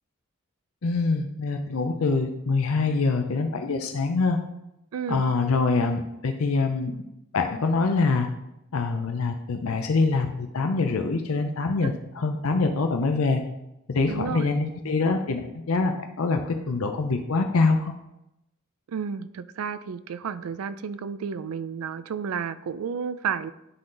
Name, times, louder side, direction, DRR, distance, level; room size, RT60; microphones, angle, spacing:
voice 1, 0.8-4.4 5.1-6.9 7.3-8.3 8.7-13.4 13.9-17.9, left 3 dB, 80° left, 5 dB, 0.6 m, -24 dB
voice 2, 4.9-5.2 11.8-11.9 14.1-14.5 18.9-23.5, right 6 dB, 90° right, 14 dB, 0.4 m, -31 dB
9.9 x 3.8 x 3.9 m, 0.87 s
head